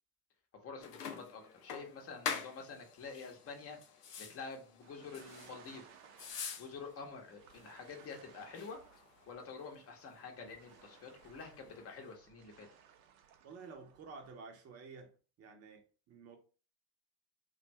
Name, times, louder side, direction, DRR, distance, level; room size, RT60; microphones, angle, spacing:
voice 1, 0.6-3.8 4.2-5.9 6.6-8.8 9.3-12.7, left 4 dB, 30° left, 0.9 m, -48 dB
sound 1, 0.8-12.2, left 6 dB, 85° left, 0.6 m, -48 dB
sound 2, 4.8-14.4, right 8 dB, 65° right, 0.6 m, -62 dB
voice 2, 13.4-16.4, right 4 dB, 35° right, 0.8 m, -52 dB
2.5 x 2.3 x 3.1 m
hypercardioid pair, 70°, 46 cm